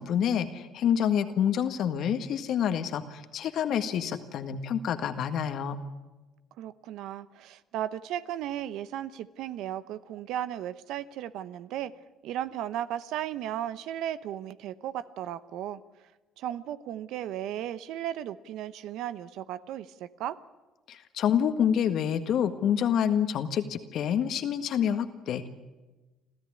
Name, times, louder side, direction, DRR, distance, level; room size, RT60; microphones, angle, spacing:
voice 1, 0.0-5.8 20.9-25.5, left 8 dB, 60° left, 9 dB, 1.7 m, -27 dB
voice 2, 6.6-11.9 12.2-15.8 16.4-20.4, right 11 dB, 70° right, 14 dB, 0.9 m, -35 dB
25.5 x 14.0 x 9.8 m, 1.2 s
supercardioid pair, 75°, 0 cm